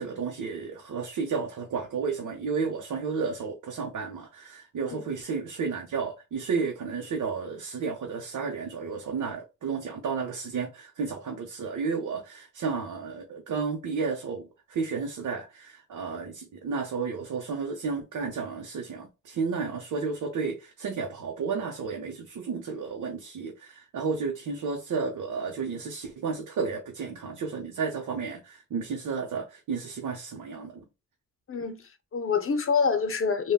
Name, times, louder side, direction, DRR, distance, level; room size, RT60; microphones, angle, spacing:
voice 1, 0.0-30.8, right 5 dB, 85° right, 0.7 m, -32 dB
voice 2, 31.5-33.5, left 5 dB, 45° left, 0.6 m, -27 dB
3.5 x 2.2 x 2.2 m
wide cardioid pair, 140°, 30 cm